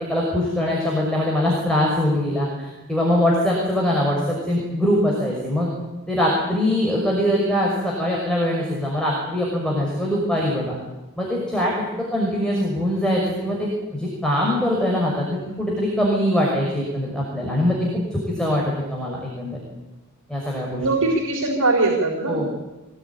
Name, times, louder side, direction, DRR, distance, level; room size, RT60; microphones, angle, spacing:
voice 1, 0.1-5.7 6.1-10.7 11.2-11.7 12.1-19.6 20.3-20.9 22.3-22.5, left 1 dB, 5° left, -3 dB, 5.9 m, -22 dB
voice 2, 20.8-22.5, right 2 dB, 90° right, 0 dB, 3.9 m, -21 dB
24.5 x 19.0 x 9.8 m, 1.1 s
head